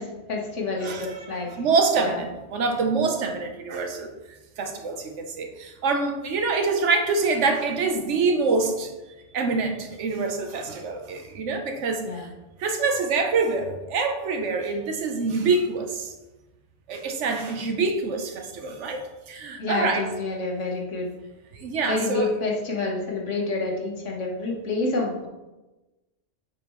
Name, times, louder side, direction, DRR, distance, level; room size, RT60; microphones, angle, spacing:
voice 1, 0.0-1.5 2.0-2.2 12.1-12.3 19.6-21.1 21.8-25.3, left 3 dB, 85° left, -1 dB, 1.6 m, -28 dB
voice 2, 0.8-4.1 4.6-8.9 9.3-12.3 12.6-16.1 16.9-20.1 21.5-22.3, right 4 dB, 80° right, 4 dB, 1.2 m, -26 dB
7.4 x 5.2 x 3.0 m, 1.1 s
omnidirectional pair, 1.2 m